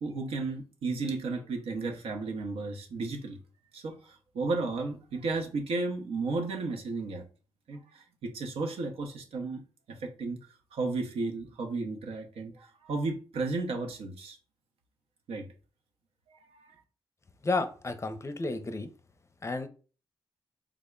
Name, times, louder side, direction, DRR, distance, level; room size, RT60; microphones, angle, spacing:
voice 1, 0.0-3.4 3.7-7.2 7.7-9.6 9.9-10.4 10.7-14.4 15.3-15.5 16.5-16.7, right 3 dB, 75° right, 0.7 m, -33 dB
voice 2, 17.4-18.9 19.4-19.7, left 3 dB, 30° left, 0.5 m, -32 dB
3.5 x 2.1 x 3.6 m
supercardioid pair, 50°, 10 cm